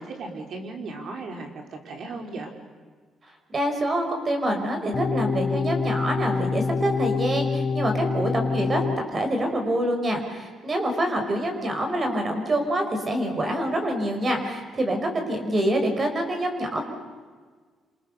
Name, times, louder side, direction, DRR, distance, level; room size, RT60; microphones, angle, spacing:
voice 1, 0.0-2.5, right 3 dB, 65° right, 3 dB, 5.2 m, -36 dB
voice 2, 3.5-8.8 9.1-16.8, right 1 dB, 35° right, 4 dB, 5.9 m, -26 dB
sound 1, 4.9-9.0, left 5 dB, 40° left, 1.2 m, -26 dB
28.5 x 27.0 x 7.0 m, 1.5 s
cardioid pair, 90°, 0 cm